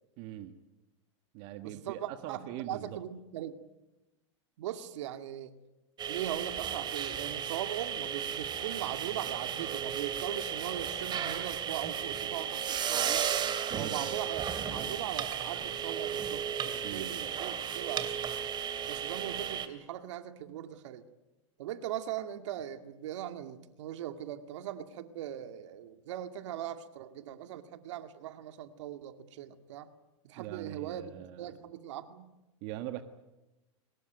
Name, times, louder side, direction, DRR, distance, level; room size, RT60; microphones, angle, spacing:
voice 1, 0.2-0.6 1.3-3.0 13.7-14.1 16.8-17.1 30.4-31.5 32.6-33.0, right 13 dB, 50° right, 8 dB, 1.6 m, -41 dB
voice 2, 1.6-3.5 4.6-5.5 6.0-13.3 13.7-18.2 18.8-21.0 21.6-29.9 30.2-32.3, right 11 dB, 70° right, 8 dB, 2.1 m, -40 dB
sound 1, 6.0-19.7, right 8 dB, 30° right, 2.6 m, -34 dB
23.5 x 21.0 x 9.4 m, 1.0 s
hypercardioid pair, 120°, 16 cm